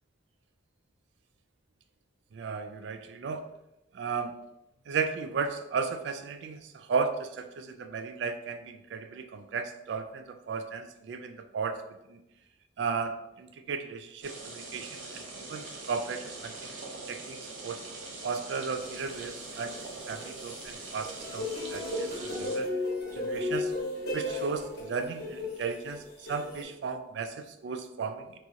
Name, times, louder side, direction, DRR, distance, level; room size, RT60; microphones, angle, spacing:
voice 1, 2.3-3.5 3.9-4.3 4.9-12.2 12.8-16.7 17.1-17.8 18.2-22.7 23.1-23.7 24.1-28.4, right 5 dB, 65° right, 7 dB, 0.3 m, -35 dB
sound 1, 14.2-22.6, right 3 dB, 85° right, 0.7 m, -43 dB
sound 2, 18.8-20.7 21.0-26.6, left 2 dB, 50° left, 1.2 m, -35 dB
2.9 x 2.4 x 3.9 m, 0.90 s
head